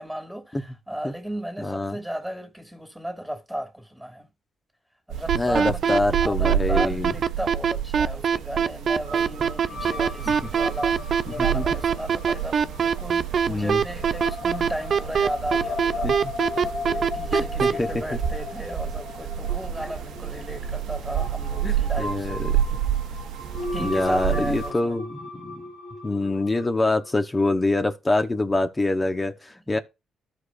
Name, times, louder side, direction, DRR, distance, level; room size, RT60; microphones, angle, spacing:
voice 1, 0.0-4.3 5.1-16.1 16.9-22.4 23.7-25.0 29.7-29.8, equal, 5° right, 2.5 m, -35 dB
voice 2, 1.6-2.0 5.3-7.1 11.5-11.6 13.5-13.8 16.0-16.1 17.3-17.9 21.6-22.5 23.8-25.6 26.0-29.8, left 2 dB, 20° left, 1.0 m, -25 dB
sound 1, 5.1-24.7, right 10 dB, 85° right, 1.0 m, -30 dB
sound 2, 5.3-17.7, right 7 dB, 50° right, 0.4 m, -22 dB
sound 3, 9.0-27.2, left 3 dB, 80° left, 2.6 m, -37 dB
14.0 x 4.8 x 2.5 m
cardioid pair, 90°, 0 cm